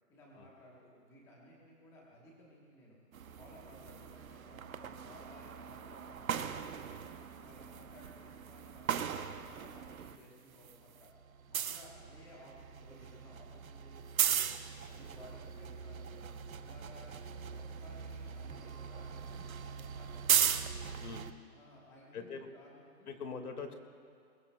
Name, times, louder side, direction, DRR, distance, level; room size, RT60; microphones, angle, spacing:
voice 1, 0.1-3.0 3.3-7.1 7.4-11.1 11.5-14.5 14.8-17.1 17.5-20.4 21.5-23.2, left 1 dB, 5° left, -3 dB, 1.1 m, -58 dB
sound 1, 3.1-10.2 10.5-21.3, right 8 dB, 55° right, 0.8 m, -38 dB
voice 2, 22.1-22.5 23.1-23.7, left 5 dB, 60° left, 6 dB, 2.0 m, -42 dB
21.5 x 20.5 x 2.2 m, 2.3 s
hypercardioid pair, 160°, 50 cm